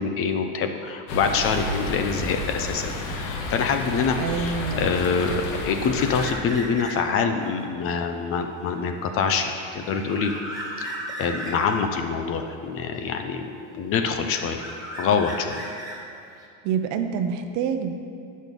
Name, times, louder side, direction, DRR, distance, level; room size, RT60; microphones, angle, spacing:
voice 1, 0.0-10.3 10.8-14.6 15.0-15.6, left 5 dB, 35° left, 6 dB, 0.6 m, -25 dB
sound 1, 1.1-6.3, left 2 dB, 85° left, 1.3 m, -31 dB
voice 2, 4.2-4.9 16.6-17.9, right 7 dB, 50° right, 7 dB, 0.7 m, -26 dB
sound 2, 6.0-7.3 7.7-11.9 13.0-13.7 14.0-16.4, right 1 dB, 10° right, 1.3 m, -37 dB
8.9 x 6.4 x 5.3 m, 2.5 s
supercardioid pair, 135°, 38 cm